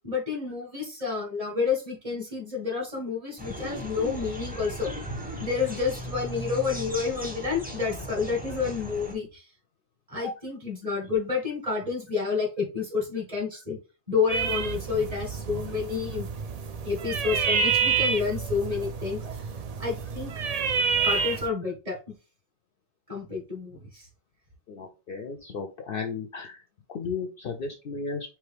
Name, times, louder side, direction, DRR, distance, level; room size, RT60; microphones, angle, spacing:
voice 1, 0.0-9.4 10.1-13.8 14.1-16.3 16.8-19.4 19.8-20.3 20.7-22.1 23.1-24.1, left 5 dB, 30° right, 0 dB, 1.7 m, -30 dB
sound 1, 3.4-9.1, equal, 10° right, 0.9 m, -37 dB
sound 2, 14.3-21.5, right 5 dB, 50° right, 0.4 m, -28 dB
voice 2, 24.7-26.6 26.9-28.4, left 5 dB, 60° left, 5 dB, 0.7 m, -34 dB
4.6 x 3.0 x 3.4 m, 0.32 s
omnidirectional pair, 1.3 m